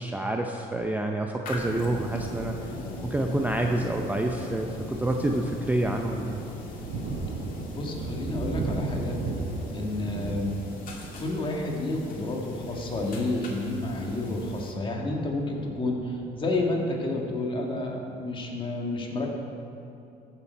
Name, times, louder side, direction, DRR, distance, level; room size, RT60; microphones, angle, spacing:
voice 1, 0.0-2.6 3.0-6.4, right 1 dB, 10° right, 2 dB, 0.6 m, -28 dB
sound 1, 1.4-14.7, left 2 dB, 55° left, 2.2 m, -46 dB
sound 2, 1.5-16.7, left 1 dB, 90° left, 1.9 m, -41 dB
Thunder, 4.7-15.1, right 3 dB, 70° right, 1.2 m, -37 dB
voice 2, 7.7-9.2 9.7-10.8 11.2-19.3, left 2 dB, 30° left, 0 dB, 1.9 m, -30 dB
14.5 x 7.0 x 4.6 m, 2.8 s
cardioid pair, 110°, 17 cm